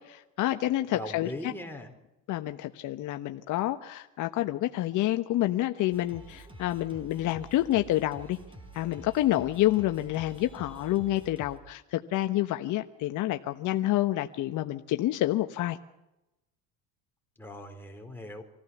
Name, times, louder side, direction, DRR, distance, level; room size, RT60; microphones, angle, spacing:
voice 1, 0.0-1.5 2.3-8.4 8.7-15.8, left 14 dB, 55° left, 7 dB, 1.1 m, -28 dB
voice 2, 0.9-1.9 17.4-18.4, left 1 dB, 5° left, 3 dB, 4.3 m, -40 dB
Singing, 5.9-11.6, right 2 dB, 15° right, 5.0 m, -48 dB
25.0 x 15.5 x 7.1 m, 0.93 s
supercardioid pair, 100°, 38 cm